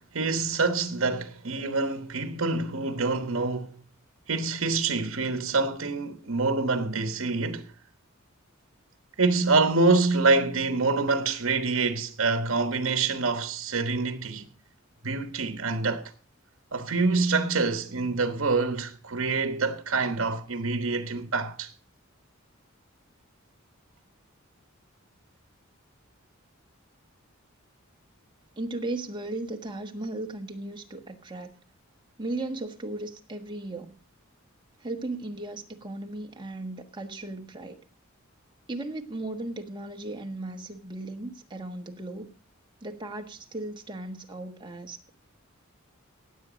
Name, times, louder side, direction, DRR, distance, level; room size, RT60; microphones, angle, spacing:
voice 1, 0.0-3.8 4.3-7.7 9.2-14.5 15.0-16.1 16.7-21.7, right 3 dB, 70° right, 1.2 m, -26 dB
voice 2, 28.6-31.5 32.2-34.0 34.8-37.8 38.7-42.3 42.8-45.1, right 2 dB, 25° right, 1.4 m, -36 dB
17.0 x 7.9 x 5.1 m
head